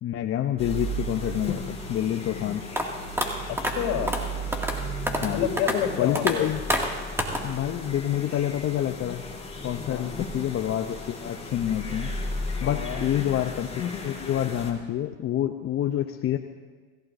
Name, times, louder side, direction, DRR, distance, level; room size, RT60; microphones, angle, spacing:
voice 1, 0.0-2.7 5.2-5.5 6.0-6.6 7.4-9.2 9.6-12.1 12.6-13.7 14.0-16.4, left 11 dB, 35° left, 6 dB, 0.7 m, -27 dB
sound 1, 0.6-14.7, equal, 15° left, 3.3 m, -35 dB
sound 2, 2.8-2.9 3.2-3.3 3.6-3.7 4.1-4.2 4.5-4.8 5.1-5.3 5.6-5.8 6.2-6.3 6.7-6.9 7.2-7.4, equal, 5° right, 2.2 m, -26 dB
voice 2, 3.5-4.1 5.3-6.5 9.8-10.1 12.6-13.1, left 9 dB, 55° left, 3 dB, 3.4 m, -29 dB
26.0 x 15.5 x 2.6 m, 1.4 s
hypercardioid pair, 95°, 40 cm